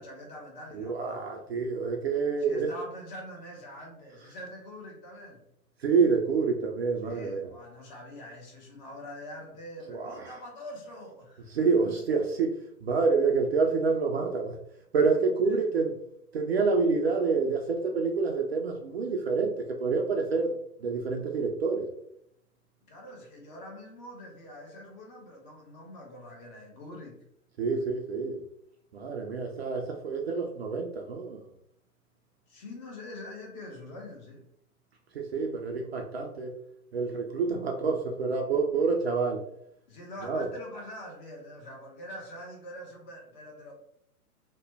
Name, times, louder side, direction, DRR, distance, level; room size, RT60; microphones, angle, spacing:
voice 1, 0.0-1.2 2.4-5.4 7.0-12.0 15.4-15.7 22.8-27.2 27.7-27.9 32.5-34.4 39.9-43.7, left 1 dB, 30° left, 0 dB, 0.9 m, -44 dB
voice 2, 0.7-2.7 5.8-7.5 9.9-10.3 11.5-14.6 14.9-15.9 16.3-21.9 27.6-28.4 28.9-31.5 35.1-36.5 36.9-39.4 40.3-40.5, right 4 dB, 45° right, 3 dB, 0.4 m, -27 dB
2.9 x 2.1 x 3.3 m, 0.71 s
figure-of-eight pair, 120°, 45 cm